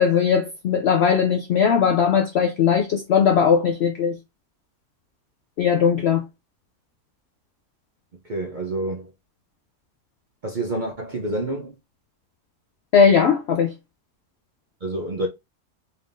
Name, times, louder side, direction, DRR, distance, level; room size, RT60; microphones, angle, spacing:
voice 1, 0.0-4.2 5.6-6.2 12.9-13.7, left 7 dB, 70° left, 0.6 m, -19 dB
voice 2, 8.2-9.1 10.4-11.7 14.8-15.3, right 1 dB, 45° right, 0.6 m, -28 dB
4.2 x 3.5 x 2.6 m
omnidirectional pair, 1.7 m